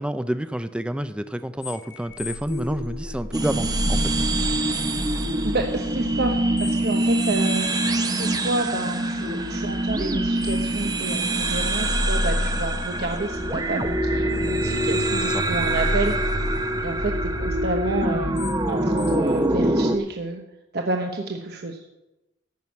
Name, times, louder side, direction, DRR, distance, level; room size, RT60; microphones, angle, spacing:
voice 1, 0.0-4.1 15.2-15.5, right 1 dB, 5° right, 11 dB, 0.4 m, -29 dB
sound 1, 1.6-20.0, left 1 dB, 85° left, 2.8 m, -32 dB
sound 2, 3.3-20.0, right 1 dB, 20° right, 0.8 m, -25 dB
voice 2, 5.4-7.7 8.0-16.3 16.8-18.4 18.7-20.4 20.7-21.8, right 2 dB, 60° right, 3 dB, 1.0 m, -29 dB
14.5 x 6.2 x 8.3 m, 0.98 s
head